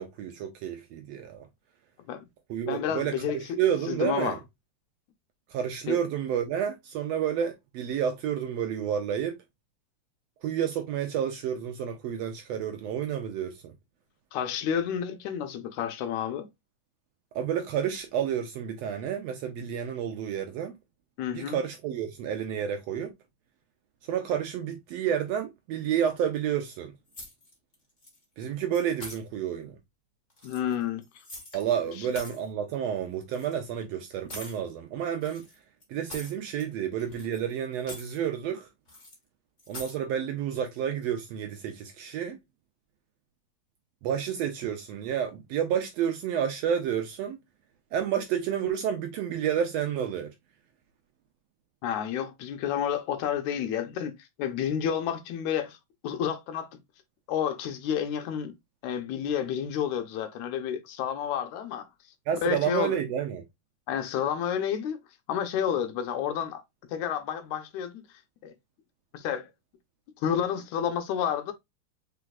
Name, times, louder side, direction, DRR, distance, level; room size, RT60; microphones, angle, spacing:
voice 1, 0.0-1.4 2.5-3.1 3.6-4.4 5.5-9.4 10.4-13.7 17.3-20.7 21.3-23.1 24.1-26.9 28.4-29.8 31.5-35.4 35.9-38.7 39.7-42.4 44.0-47.4 47.9-50.3 62.3-63.4, right 9 dB, 75° right, 1.5 m, -30 dB
voice 2, 2.7-3.6 3.9-4.4 5.9-6.0 14.3-16.5 21.2-21.6 30.4-31.0 51.8-54.1 54.4-55.8 56.0-56.7 57.3-58.5 58.8-61.9 62.4-63.0 63.9-65.0 65.3-66.6 66.9-68.0 68.4-68.5 69.1-69.5 70.2-71.5, left 9 dB, 80° left, 2.0 m, -30 dB
sound 1, 27.1-27.7 28.0-28.4 28.7-29.2 30.3-31.6 31.9-32.5 33.3-33.5 34.3-34.6 35.2-36.7 37.0-37.5 37.8-38.2 38.9-39.2 39.6-40.0, left 1 dB, 30° left, 0.9 m, -44 dB
5.0 x 4.1 x 2.3 m
omnidirectional pair, 3.5 m